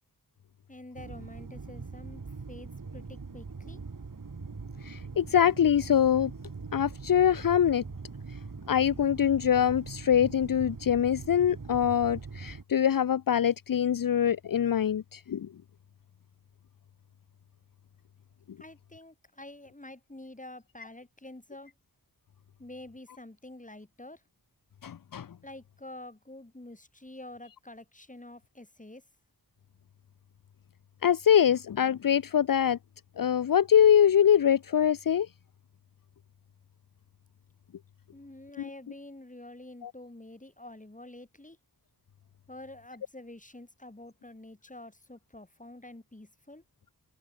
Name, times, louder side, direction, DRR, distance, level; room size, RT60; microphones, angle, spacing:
voice 1, 0.7-2.2 2.5-3.8 18.6-21.7 22.6-24.2 25.4-29.0 38.1-41.6 42.5-46.6, left 1 dB, 20° left, 7.9 m, -47 dB
sound 1, 0.9-12.6, right 4 dB, 60° right, 6.5 m, -42 dB
voice 2, 4.8-6.3 6.7-7.8 8.7-15.5 24.8-25.3 31.0-32.8 33.2-35.3 39.8-39.9, left 9 dB, 65° left, 0.7 m, -24 dB
cardioid pair, 50°, 36 cm